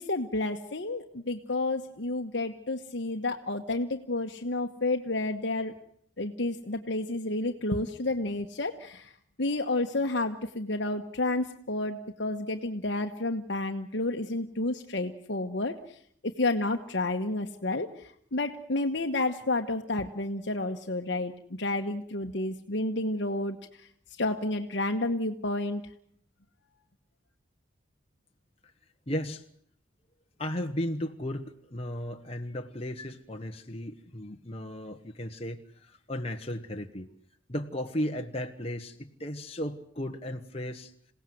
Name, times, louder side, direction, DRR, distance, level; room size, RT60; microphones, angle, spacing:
voice 1, 0.0-5.7 6.2-9.1 9.4-16.0 16.4-21.3 21.6-23.9 24.2-25.8, left 2 dB, 60° left, 4 dB, 1.3 m, -30 dB
voice 2, 29.1-29.4 30.4-37.1 37.5-40.9, left 1 dB, 30° left, 4 dB, 1.3 m, -35 dB
27.5 x 17.5 x 7.8 m, 0.65 s
head